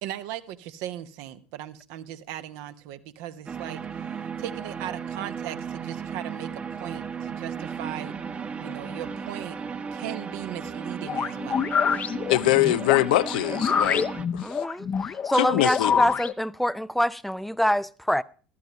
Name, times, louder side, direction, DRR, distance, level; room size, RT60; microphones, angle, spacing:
voice 1, 0.0-3.8 4.4-8.1 8.6-9.6 9.9-11.6 13.8-14.0, right 12 dB, 60° right, 1.0 m, -38 dB
sound 1, 3.5-14.3, right 6 dB, 30° right, 1.1 m, -35 dB
sound 2, 11.0-16.3, left 7 dB, 30° left, 0.8 m, -27 dB
voice 2, 12.3-14.1 14.3-14.6 15.3-16.0, left 17 dB, 65° left, 0.4 m, -23 dB
voice 3, 14.4-18.2, equal, 5° left, 0.5 m, -26 dB
14.5 x 13.0 x 3.0 m
figure-of-eight pair, 70°, 5 cm